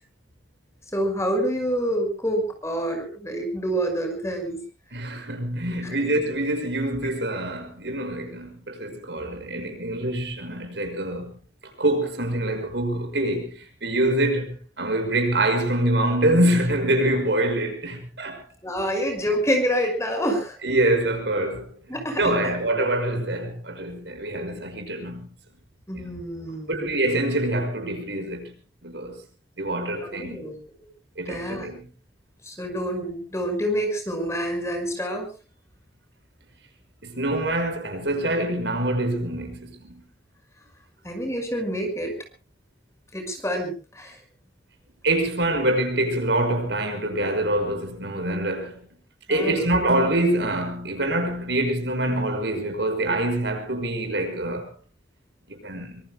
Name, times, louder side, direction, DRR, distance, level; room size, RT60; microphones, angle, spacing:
voice 1, 0.9-4.6 5.8-6.1 18.6-20.6 21.9-22.3 25.9-26.8 30.0-30.6 31.3-31.7 32.4-35.3 41.0-42.1 43.1-44.2 49.3-49.6, equal, 15° left, 5.6 m, -27 dB
voice 2, 4.9-11.4 11.8-18.4 20.6-21.8 22.2-25.3 26.0-26.1 26.7-28.5 28.8-29.2 29.6-30.5 31.2-31.8 37.0-40.0 45.0-48.8 49.3-54.7 55.5-56.0, right 1 dB, 75° right, 5.6 m, -25 dB
25.0 x 25.0 x 2.2 m
head